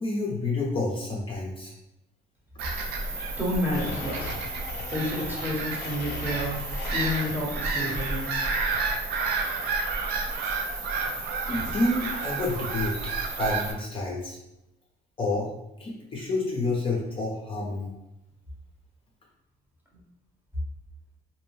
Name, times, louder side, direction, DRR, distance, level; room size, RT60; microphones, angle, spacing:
voice 1, 0.0-1.7 11.5-13.0 13.4-14.4 15.2-15.5 15.8-17.9, left 2 dB, 30° left, -3 dB, 0.6 m, -29 dB
Bird vocalization bird call bird song / Gull seagull, 2.6-13.7, right 3 dB, 70° right, 0.5 m, -30 dB
voice 2, 3.4-4.3 4.9-6.6 6.9-8.3, left 1 dB, 10° right, -4 dB, 0.9 m, -30 dB
Domestic sounds home sounds, 3.7-7.5 7.9-8.8, left 4 dB, 80° left, 0.4 m, -39 dB
2.6 x 2.1 x 3.1 m, 0.87 s
cardioid pair, 110°, 17 cm